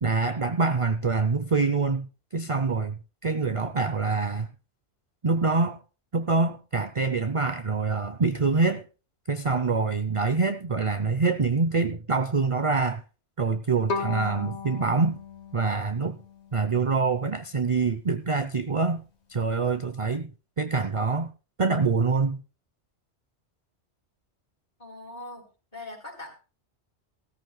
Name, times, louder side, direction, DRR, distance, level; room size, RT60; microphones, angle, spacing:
voice 1, 0.0-4.5 5.2-5.8 6.1-8.8 9.3-13.0 13.4-15.2 15.5-16.2 16.5-19.0 19.3-20.3 20.6-21.3 21.6-22.4, right 4 dB, 35° right, 10 dB, 0.6 m, -25 dB
Bowed string instrument, 13.9-17.0, left 4 dB, 75° left, 1.8 m, -36 dB
voice 2, 24.8-25.5 25.7-26.4, left 2 dB, 35° left, 0 dB, 3.9 m, -41 dB
16.5 x 14.0 x 2.2 m, 0.32 s
omnidirectional pair, 1.2 m